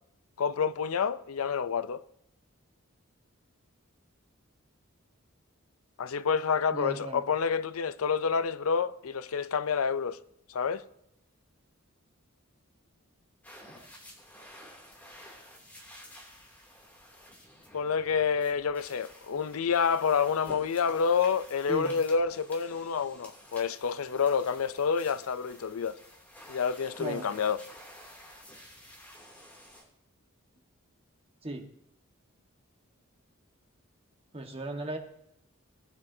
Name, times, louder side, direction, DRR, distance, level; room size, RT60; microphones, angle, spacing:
voice 1, 0.4-2.0 6.0-10.2 10.5-10.8 17.7-26.0 26.5-27.6, left 6 dB, 90° left, 0.5 m, -28 dB
voice 2, 6.7-7.3 21.7-21.9 27.0-27.3 31.4-31.6 34.3-35.0, right 1 dB, 25° right, 1.4 m, -36 dB
sound 1, 13.4-29.8, equal, 10° left, 2.7 m, -51 dB
19.5 x 9.8 x 2.7 m
head